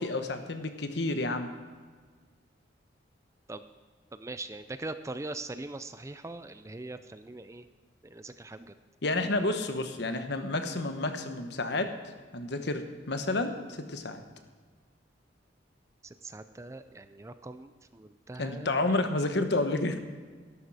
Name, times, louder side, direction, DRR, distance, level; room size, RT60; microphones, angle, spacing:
voice 1, 0.0-1.5 9.0-11.9 12.3-14.2 18.4-20.0, left 2 dB, 60° left, 7 dB, 1.1 m, -30 dB
voice 2, 4.1-7.7 8.0-8.7 16.0-18.7, right 2 dB, 15° right, 11 dB, 0.4 m, -41 dB
13.0 x 12.0 x 4.8 m, 1.5 s
head